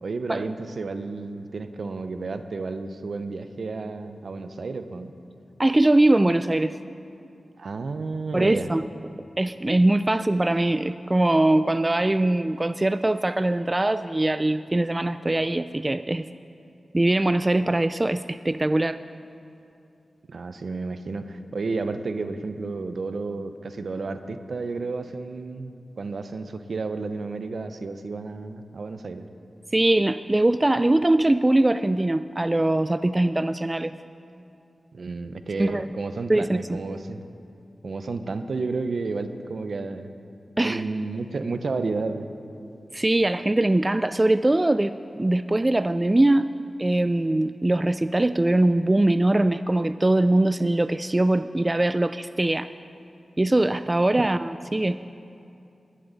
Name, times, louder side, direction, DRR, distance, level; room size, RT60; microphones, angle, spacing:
voice 1, 0.0-5.1 7.6-8.7 10.1-10.2 20.3-29.3 34.9-37.2 37.8-40.1 40.6-42.3 54.2-54.3, right 3 dB, 70° right, 9 dB, 0.7 m, -31 dB
voice 2, 5.6-6.7 8.3-8.9 9.4-16.3 16.9-19.0 29.7-33.9 35.6-35.9 36.3-36.8 40.6-40.8 42.9-46.5 46.8-52.7 53.4-55.0, right 1 dB, 25° right, 12 dB, 0.3 m, -22 dB
16.5 x 11.5 x 4.0 m, 2.7 s
cardioid pair, 45°, 0 cm